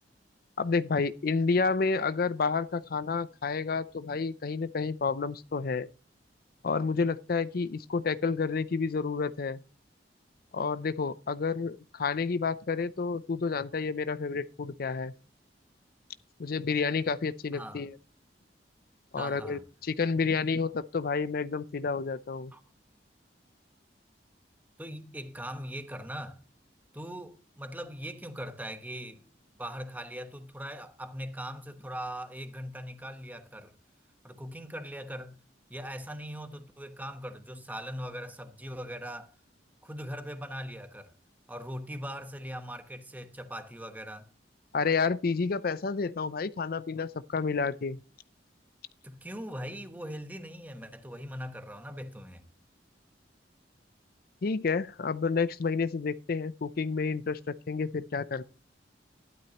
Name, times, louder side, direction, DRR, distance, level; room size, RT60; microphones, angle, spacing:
voice 1, 0.6-5.9 6.6-9.6 10.5-15.1 16.4-18.0 19.1-22.5 44.7-48.0 54.4-58.4, left 4 dB, 55° left, 0.5 m, -30 dB
voice 2, 17.5-17.9 19.2-19.6 22.5-22.6 24.8-26.4 26.9-29.3 29.6-33.7 34.2-35.4 35.7-39.3 39.8-41.1 41.5-44.3 49.0-52.5, equal, 10° right, 1.1 m, -40 dB
13.0 x 12.0 x 2.9 m
head